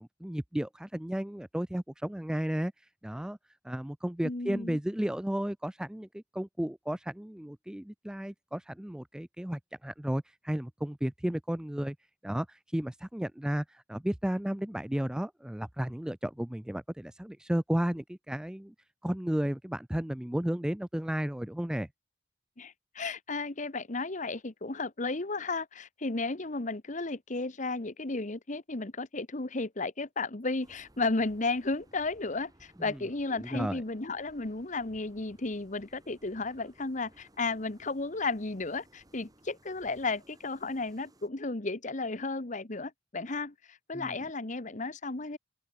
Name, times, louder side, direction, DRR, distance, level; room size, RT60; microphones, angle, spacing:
voice 1, 0.0-2.7 3.0-3.4 3.6-12.0 12.2-18.7 19.0-21.9 32.9-33.0 33.3-33.8 43.9-44.2, equal, 5° right, 0.3 m, -33 dB
voice 2, 4.2-4.8 22.6-45.4, left 3 dB, 40° left, 1.3 m, -34 dB
sound 1, 30.6-41.3, right 1 dB, 20° right, 7.6 m, -61 dB
open air
head